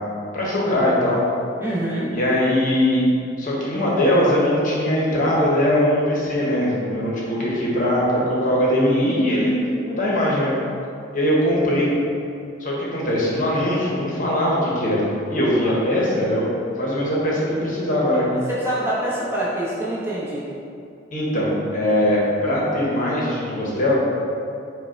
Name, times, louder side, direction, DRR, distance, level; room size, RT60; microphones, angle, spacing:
voice 1, 0.3-1.2 2.1-3.0 3.4-9.6 9.9-10.5 11.1-11.9 12.6-18.3 21.1-23.9, left 1 dB, 45° left, -5 dB, 0.9 m, -21 dB
voice 2, 1.6-2.1 15.6-15.7 18.6-20.5, right 1 dB, 15° right, -8 dB, 0.9 m, -25 dB
4.9 x 2.2 x 4.5 m, 2.6 s
head